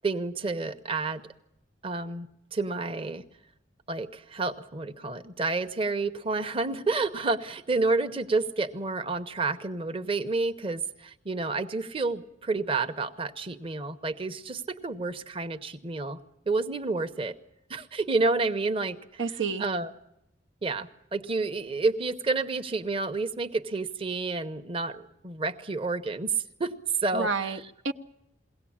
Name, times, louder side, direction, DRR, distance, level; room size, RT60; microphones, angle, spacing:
voice 1, 0.0-1.2 1.8-3.2 3.9-16.2 16.5-17.3 17.7-19.2 19.6-19.9 20.6-26.7 27.0-27.5, right 3 dB, 30° right, 8 dB, 0.8 m, -30 dB
voice 2, 19.2-19.6 27.1-27.9, right 4 dB, 90° right, 5 dB, 0.9 m, -30 dB
22.0 x 17.5 x 8.7 m, 0.84 s
head